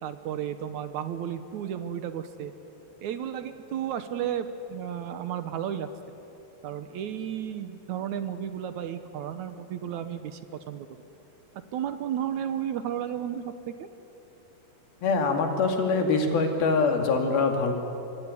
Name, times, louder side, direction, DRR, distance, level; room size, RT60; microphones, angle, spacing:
voice 1, 0.0-2.5 3.0-6.2 6.6-10.4 10.7-10.9 11.7-13.9, right 9 dB, 65° right, 10 dB, 2.0 m, -33 dB
voice 2, 15.0-17.7, left 4 dB, 75° left, 3 dB, 4.3 m, -24 dB
25.0 x 23.5 x 9.9 m, 2.8 s
omnidirectional pair, 4.3 m